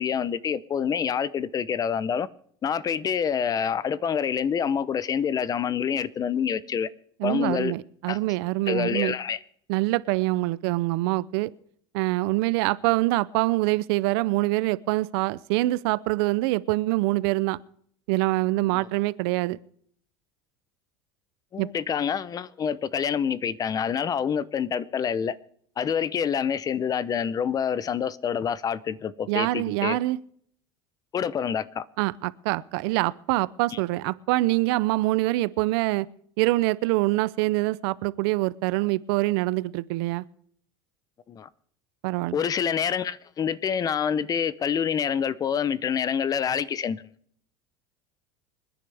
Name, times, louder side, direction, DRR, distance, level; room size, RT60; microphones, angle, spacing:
voice 1, 0.0-2.3 2.6-6.9 7.2-7.7 8.1-8.2 8.7-9.4 18.7-18.8 21.5-25.3 25.8-30.0 31.1-31.8 33.7-33.8 41.3-41.5 42.3-47.0, left 7 dB, 30° left, 0.7 m, -27 dB
voice 2, 7.2-9.1 9.7-11.5 11.9-17.6 18.1-19.6 21.6-21.7 29.3-30.2 32.0-36.1 36.4-40.2 42.0-42.4, right 20 dB, 75° right, 0.6 m, -25 dB
26.5 x 10.0 x 3.5 m
supercardioid pair, 120°, 13 cm